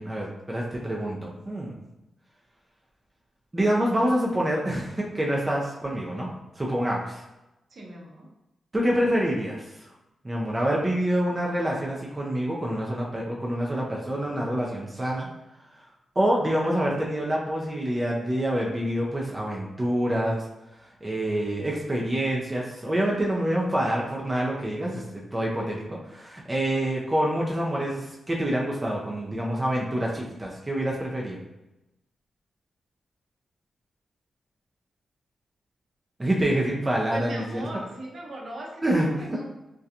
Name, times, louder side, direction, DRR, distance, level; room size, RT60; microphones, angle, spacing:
voice 1, 0.0-1.8 3.5-6.3 6.6-7.2 8.7-9.6 10.2-15.3 16.2-20.5 21.0-31.4 36.2-37.7 38.8-39.4, right 1 dB, 20° right, -3 dB, 0.5 m, -26 dB
voice 2, 7.7-8.3 37.1-39.5, right 1 dB, 60° right, -2 dB, 0.7 m, -38 dB
2.7 x 2.2 x 2.4 m, 0.94 s
cardioid pair, 75°, 0 cm